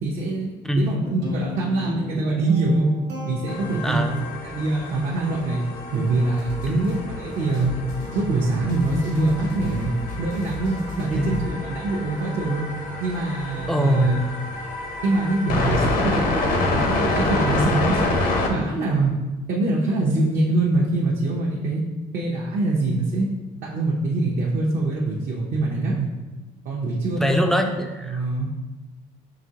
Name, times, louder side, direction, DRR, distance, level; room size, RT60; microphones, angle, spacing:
voice 1, 0.0-2.9 3.2-4.1 4.4-5.6 5.9-7.7 8.1-9.9 10.2-12.7 13.0-14.2 15.0-16.2 16.7-18.2 18.5-19.1 19.5-21.8 22.1-23.3 23.7-26.1 26.6-27.4 28.0-28.5, right 2 dB, 60° right, -3 dB, 0.6 m, -24 dB
Guitar, 1.2-4.5, right 1 dB, 85° right, 0.9 m, -32 dB
sound 1, 3.5-18.5, left 2 dB, 55° left, 0.7 m, -28 dB
voice 2, 3.8-4.2 6.7-6.9 11.1-11.4 13.7-14.2 27.2-28.2, equal, ahead, 5 dB, 0.3 m, -23 dB
sound 2, 6.4-11.5, left 2 dB, 85° left, 1.2 m, -36 dB
5.0 x 2.8 x 2.8 m, 1.2 s
cardioid pair, 110°, 17 cm